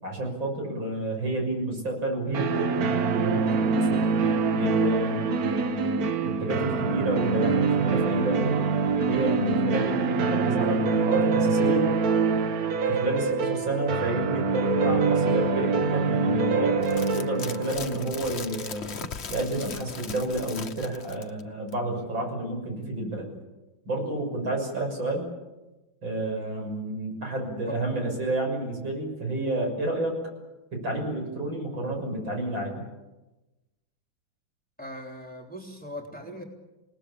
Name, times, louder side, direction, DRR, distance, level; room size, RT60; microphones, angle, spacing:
voice 1, 0.0-4.2 4.5-8.6 9.1-11.9 12.3-12.4 12.9-16.8 17.1-18.9 19.3-23.3 23.9-25.3 26.0-30.2 30.7-32.8, right 1 dB, 75° right, 2 dB, 7.3 m, -30 dB
sound 1, 2.3-19.1, right 4 dB, 55° right, 1.4 m, -25 dB
sound 2, 16.8-21.4 21.7-21.8, left 5 dB, 40° left, 1.2 m, -38 dB
voice 2, 34.8-36.4, left 1 dB, 5° left, 1 dB, 3.5 m, -39 dB
28.5 x 19.0 x 8.7 m, 1.1 s
omnidirectional pair, 2.1 m